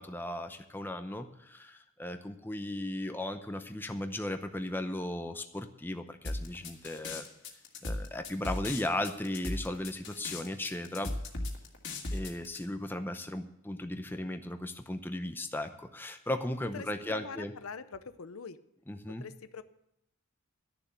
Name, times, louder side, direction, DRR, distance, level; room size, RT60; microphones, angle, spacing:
voice 1, 0.0-7.3 7.8-11.2 12.1-17.5 18.9-19.2, left 1 dB, 10° left, 7 dB, 0.7 m, -36 dB
sound 1, 6.2-12.6, left 2 dB, 60° left, 1.8 m, -37 dB
voice 2, 16.7-18.6 19.2-19.6, left 5 dB, 85° left, 13 dB, 0.7 m, -43 dB
12.0 x 7.0 x 8.1 m, 0.79 s
head